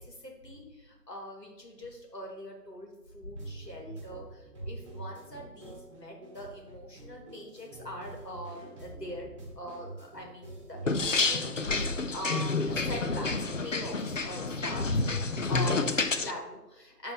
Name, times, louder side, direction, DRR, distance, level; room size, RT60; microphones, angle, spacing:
voice 1, 0.0-9.3 9.6-17.1, equal, 80° left, 0 dB, 2.9 m, -42 dB
sound 1, 3.4-13.0, right 2 dB, 20° right, 1.5 m, -46 dB
sound 2, 10.9-16.3, left 3 dB, 50° left, 0.6 m, -29 dB
12.0 x 4.4 x 4.0 m, 1.1 s
figure-of-eight pair, 160°, 49 cm